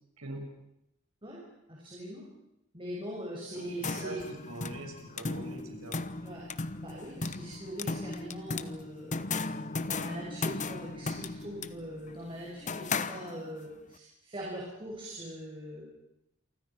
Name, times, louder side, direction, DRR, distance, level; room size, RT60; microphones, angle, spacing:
voice 1, 1.7-2.2 2.7-4.2 6.2-6.5 6.8-15.8, equal, 25° right, -3 dB, 6.3 m, -42 dB
sound 1, 3.6-13.7, left 3 dB, 35° left, 1.0 m, -36 dB
voice 2, 4.5-6.0, right 1 dB, 90° right, 2 dB, 6.7 m, -42 dB
28.0 x 24.5 x 6.0 m, 0.83 s
head